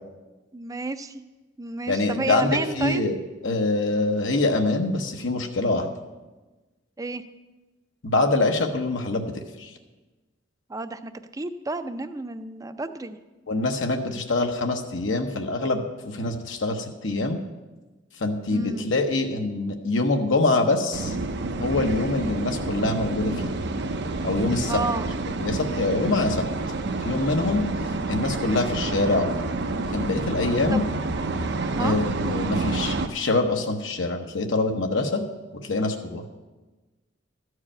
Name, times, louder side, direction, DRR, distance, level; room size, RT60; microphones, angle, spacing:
voice 1, 0.5-1.2 1.6-3.0 7.0-7.2 10.7-13.2 18.5-18.9 24.7-25.1 30.7-30.9 31.8-32.0, right 3 dB, 15° right, 10 dB, 0.5 m, -30 dB
voice 2, 1.9-3.2 3.4-5.9 8.0-9.7 13.5-17.4 18.2-21.2 21.5-23.5 24.2-24.8 25.4-26.4 27.0-27.6 28.1-29.4 29.9-30.8 31.8-35.2 35.5-36.3, left 2 dB, 70° left, 3 dB, 0.9 m, -25 dB
sound 1, 20.9-33.1, right 3 dB, 60° right, 0.6 m, -29 dB
13.5 x 4.8 x 8.7 m, 1.2 s
head